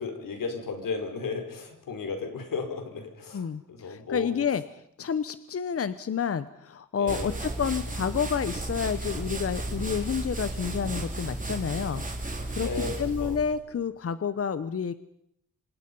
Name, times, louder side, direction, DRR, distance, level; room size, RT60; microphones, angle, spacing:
voice 1, 0.0-4.3 7.0-7.4 12.6-13.0 13.2-13.4, left 4 dB, 90° left, 5 dB, 4.8 m, -34 dB
voice 2, 3.3-12.0 12.5-14.9, left 7 dB, 45° left, 13 dB, 0.9 m, -30 dB
sound 1, 7.1-13.6, right 2 dB, 25° right, 3.6 m, -34 dB
28.0 x 26.0 x 5.4 m, 0.74 s
wide cardioid pair, 145°, 32 cm